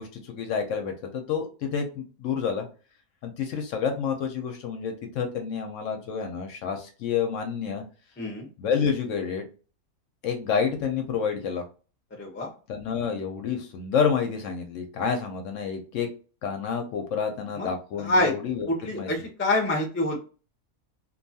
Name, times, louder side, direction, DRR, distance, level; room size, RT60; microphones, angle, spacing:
voice 1, 0.0-2.7 3.2-7.8 8.6-9.4 10.2-11.6 12.7-16.1 16.4-19.1, left 6 dB, 70° left, 4 dB, 0.8 m, -29 dB
voice 2, 8.2-8.5 12.2-12.5 17.5-17.7 18.0-18.3 18.7-20.2, left 1 dB, 15° left, 0 dB, 0.4 m, -26 dB
2.7 x 2.3 x 2.6 m, 0.36 s
omnidirectional pair, 1.5 m